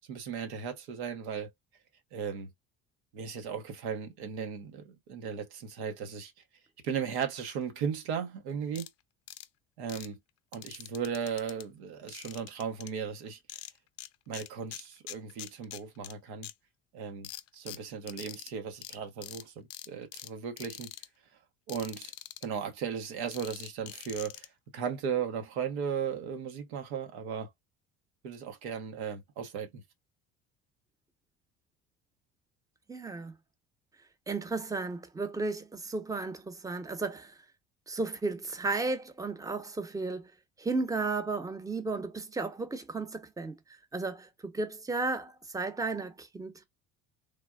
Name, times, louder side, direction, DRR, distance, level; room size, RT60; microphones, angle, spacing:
voice 1, 0.1-1.5 2.1-2.5 3.1-6.3 6.8-8.9 9.8-10.2 10.5-13.4 14.3-16.5 16.9-20.9 21.7-22.1 22.4-24.5 24.7-27.5 28.2-29.8, right 7 dB, 90° right, 0.8 m, -36 dB
sound 1, 8.8-8.9 9.3-9.5 9.9-10.1 10.5-11.6 12.1-12.9 13.5-14.1 14.3-16.1 16.4-16.5 17.2-18.5 18.8-19.0 19.2-19.4 19.7-20.3 20.6-21.1 21.7-22.5 23.3-24.5, left 13 dB, 50° left, 0.4 m, -44 dB
voice 2, 32.9-33.3 34.3-37.4 37.9-40.3 40.6-43.5 43.9-46.6, right 3 dB, 10° right, 0.7 m, -34 dB
3.3 x 2.2 x 2.2 m
supercardioid pair, 80°, 32 cm